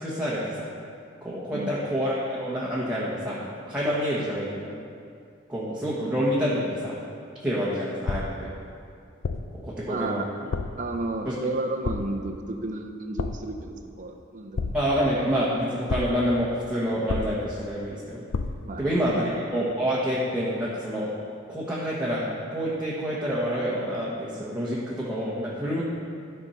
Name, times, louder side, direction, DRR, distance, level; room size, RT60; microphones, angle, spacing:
voice 1, 0.0-0.7 1.2-4.7 5.5-7.0 7.4-8.5 9.6-10.2 11.2-11.4 14.7-18.2 18.8-21.1 21.5-25.8, equal, 5° right, -8 dB, 1.3 m, -27 dB
voice 2, 1.5-1.9 9.9-10.3 10.8-14.8 18.6-19.2, right 2 dB, 40° right, 4 dB, 0.7 m, -32 dB
sound 1, 8.1-8.5 9.2-9.6 10.5-10.9 11.8-12.3 13.2-13.6 14.6-15.1 15.9-16.3 17.1-17.6 18.3-18.8, left 4 dB, 75° left, 0.5 m, -31 dB
13.0 x 4.4 x 5.6 m, 2.4 s
head